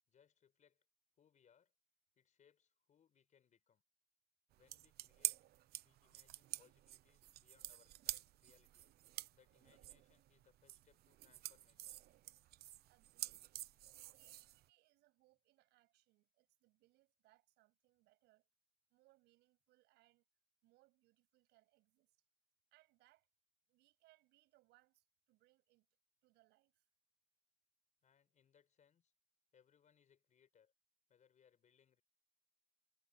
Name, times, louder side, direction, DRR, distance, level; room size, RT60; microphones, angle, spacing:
voice 1, 0.1-0.8 1.2-1.7 2.2-3.8 4.6-5.4 5.8-8.9 9.3-12.2 28.0-29.1 29.5-30.7 31.1-32.0, left 8 dB, 45° left, 6.0 m, -73 dB
sound 1, 4.5-14.7, right 14 dB, 70° right, 0.9 m, -48 dB
voice 2, 12.8-13.7 14.1-18.5 18.9-20.3 20.6-22.2 22.7-23.3 23.7-25.9 26.2-26.9, right 19 dB, 90° right, 7.9 m, -74 dB
cardioid pair, 110°, 17 cm